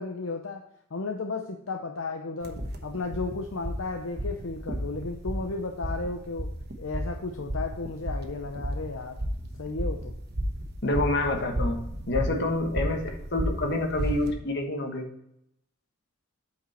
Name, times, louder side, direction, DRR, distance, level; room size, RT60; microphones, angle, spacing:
voice 1, 0.0-6.5 6.8-9.2 9.6-10.2, left 3 dB, 70° left, 3 dB, 0.7 m, -34 dB
sound 1, 2.4-14.3, equal, 50° right, 1.1 m, -33 dB
voice 2, 10.8-13.0 13.3-15.1, left 2 dB, 55° left, 3 dB, 1.5 m, -27 dB
8.4 x 5.0 x 4.3 m, 0.78 s
head